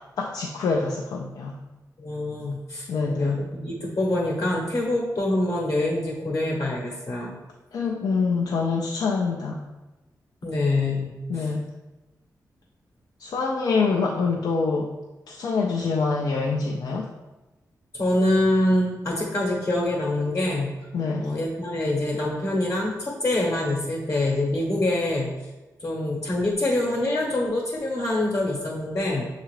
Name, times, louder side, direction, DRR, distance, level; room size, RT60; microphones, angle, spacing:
voice 1, 0.2-1.6 2.9-3.4 7.7-9.6 11.3-11.7 13.2-14.9 15.3-17.1 20.9-21.3, left 4 dB, 85° left, 0 dB, 0.4 m, -25 dB
voice 2, 2.0-7.4 10.4-11.5 17.9-20.7 21.2-25.3 25.8-29.3, left 1 dB, 45° left, -3 dB, 0.9 m, -25 dB
6.5 x 2.4 x 3.1 m, 1.1 s
wide cardioid pair, 105°, 7 cm